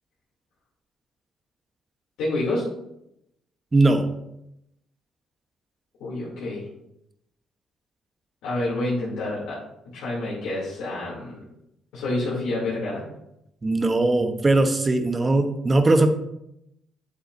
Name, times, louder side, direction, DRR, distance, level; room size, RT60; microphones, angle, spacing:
voice 1, 2.2-2.7 6.0-6.6 8.4-9.6 9.9-11.4 11.9-13.0, left 2 dB, 80° left, -8 dB, 2.9 m, -28 dB
voice 2, 3.7-4.1 13.6-16.1, right 2 dB, 25° right, 7 dB, 1.0 m, -20 dB
8.4 x 7.8 x 2.7 m, 0.81 s
cardioid pair, 80°, 0 cm